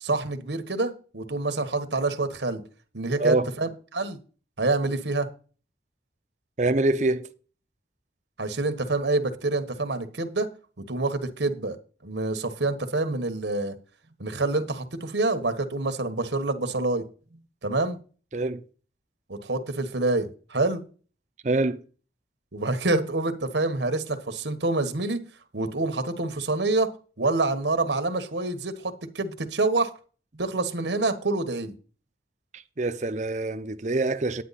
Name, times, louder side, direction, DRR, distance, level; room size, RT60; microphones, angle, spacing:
voice 1, 0.0-2.6 2.9-4.2 4.6-5.3 8.4-10.5 10.8-11.8 12.0-13.7 14.2-17.0 17.6-18.0 19.3-20.8 22.5-25.2 25.5-26.9 27.2-29.9 30.4-31.7, right 2 dB, 80° right, 1.3 m, -27 dB
voice 2, 6.6-7.3 18.3-18.6 21.4-21.8 32.5-34.4, right 2 dB, 40° right, 0.7 m, -25 dB
9.6 x 9.2 x 4.1 m
head